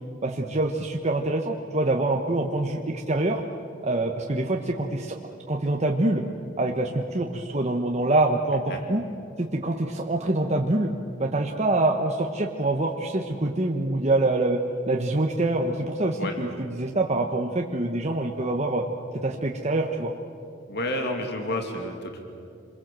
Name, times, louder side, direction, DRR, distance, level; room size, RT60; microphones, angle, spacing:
voice 1, 0.2-3.4 3.8-5.2 5.5-6.2 6.6-9.0 9.4-10.9 11.2-14.6 14.9-18.8 19.2-20.1, right 2 dB, 35° right, 1 dB, 1.2 m, -25 dB
voice 2, 20.7-22.2, left 1 dB, 60° left, 3 dB, 2.6 m, -30 dB
28.0 x 22.0 x 7.7 m, 2.6 s
head